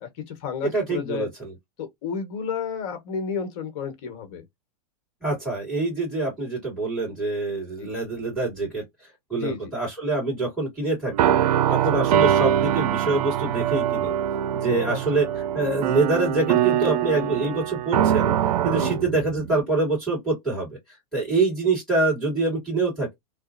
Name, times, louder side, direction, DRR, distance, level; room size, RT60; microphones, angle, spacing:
voice 1, 0.0-1.3 1.8-4.4 7.8-7.9 9.3-9.7 11.6-12.0 14.7-15.0 18.8-19.0, left 6 dB, 50° left, 1.2 m, -32 dB
voice 2, 0.6-1.5 5.2-8.8 9.3-11.3 11.7-14.1 14.5-15.3 15.5-18.3 18.6-20.7 21.1-23.1, right 3 dB, ahead, 2.0 m, -25 dB
sound 1, 11.1-19.6, right 10 dB, 90° right, 0.4 m, -23 dB
2.9 x 2.3 x 2.5 m
supercardioid pair, 140°, 20 cm